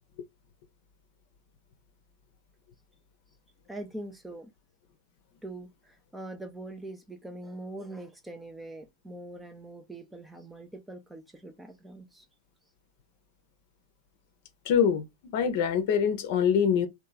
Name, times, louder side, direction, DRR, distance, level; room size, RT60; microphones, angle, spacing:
voice 1, 3.7-4.5 5.4-12.3, right 2 dB, 5° right, 0.5 m, -43 dB
voice 2, 14.7-15.0 15.3-16.9, left 7 dB, 50° left, 0.7 m, -24 dB
3.1 x 2.3 x 3.8 m
figure-of-eight pair, 90°, 0 cm